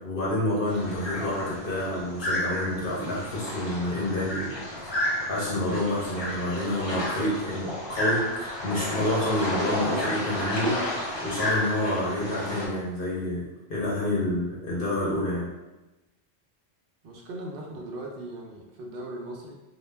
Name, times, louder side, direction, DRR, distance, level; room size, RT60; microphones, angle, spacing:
voice 1, 0.0-4.5 4.8-10.8 11.2-15.5, left 1 dB, 55° left, -6 dB, 0.8 m, -28 dB
sound 1, 0.7-12.7, left 1 dB, 40° left, 0.4 m, -31 dB
voice 2, 17.0-19.5, right 1 dB, 60° right, -1 dB, 0.6 m, -38 dB
2.3 x 2.2 x 3.1 m, 1.0 s
omnidirectional pair, 1.3 m